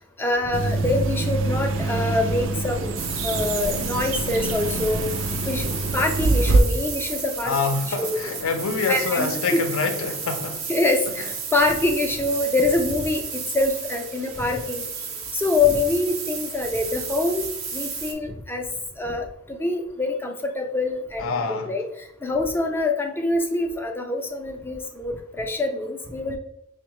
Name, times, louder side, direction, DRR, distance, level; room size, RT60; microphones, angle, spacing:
voice 1, 0.2-3.0 3.2-5.0 5.4-7.6 8.0-8.1 8.9-9.6 10.7-14.8 15.3-17.5 17.7-18.7 19.0-26.4, left 2 dB, 10° left, 0.3 m, -25 dB
sound 1, 0.5-6.6, right 2 dB, 65° right, 0.4 m, -25 dB
sound 2, 3.0-18.1, right 5 dB, 85° right, 0.7 m, -33 dB
voice 2, 7.4-10.7 21.2-21.7, left 4 dB, 75° left, 0.5 m, -26 dB
5.2 x 2.1 x 3.0 m
head